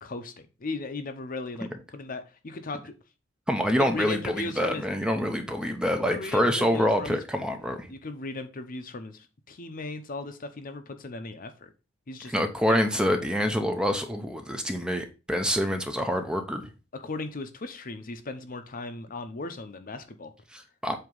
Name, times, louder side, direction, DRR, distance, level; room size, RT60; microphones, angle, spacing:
voice 1, 0.0-0.3 0.6-2.9 3.8-4.8 6.1-7.2 7.9-11.7 12.1-12.3 12.6-12.8 16.9-20.3, left 3 dB, 40° left, 0.7 m, -37 dB
voice 2, 3.5-7.9 12.2-16.7 20.5-20.9, equal, 5° right, 0.6 m, -26 dB
7.8 x 2.9 x 5.3 m
head